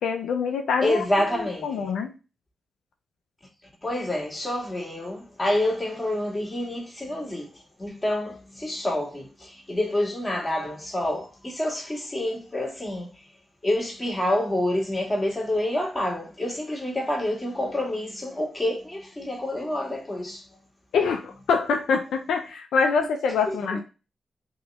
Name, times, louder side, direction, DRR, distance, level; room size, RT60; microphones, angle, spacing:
voice 1, 0.0-1.0 1.3-2.1 20.9-23.8, left 5 dB, 90° left, 0.5 m, -25 dB
voice 2, 0.8-1.6 3.8-7.5 7.8-9.3 9.7-13.1 13.6-20.4, left 1 dB, 25° left, 2.2 m, -27 dB
3.9 x 3.0 x 3.5 m
cardioid pair, 50°, 0 cm